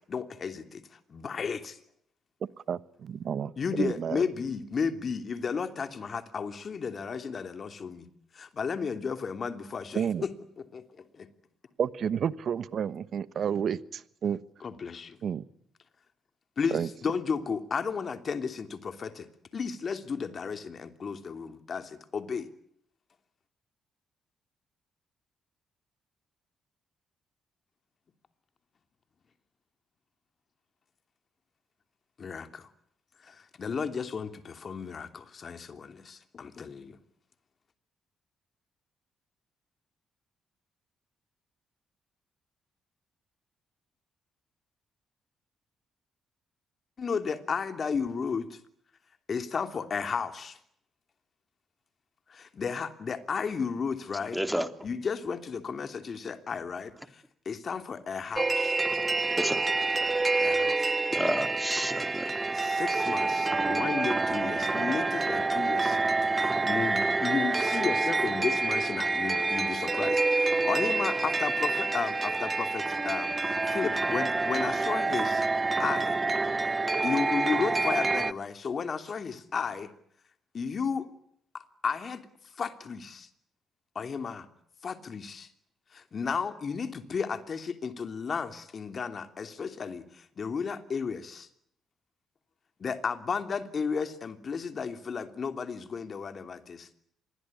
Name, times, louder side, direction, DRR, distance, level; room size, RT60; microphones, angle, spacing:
voice 1, 0.1-1.8 3.6-8.1 8.3-10.3 10.6-10.8 11.1-11.3 14.6-15.2 16.6-19.3 19.5-22.5 32.2-32.7 33.2-37.0 47.0-48.6 49.3-50.6 52.3-54.4 54.8-58.8 60.4-60.9 62.5-66.0 66.3-75.4 75.8-76.2 76.6-76.7 77.0-79.9 80.5-81.1 81.5-82.3 82.6-83.3 83.9-84.5 84.8-85.5 85.9-91.5 92.8-96.9, left 5 dB, 50° left, 3.0 m, -33 dB
voice 2, 2.7-4.2 9.9-10.2 11.8-14.4 15.2-15.4 16.7-16.9, right 8 dB, 60° right, 1.1 m, -30 dB
voice 3, 54.3-54.7 59.3-59.6 61.1-62.3 63.2-63.5, equal, ahead, 3.1 m, -31 dB
sound 1, 58.4-78.3, right 3 dB, 30° right, 1.0 m, -27 dB
26.5 x 21.5 x 9.9 m
hypercardioid pair, 50°, 0 cm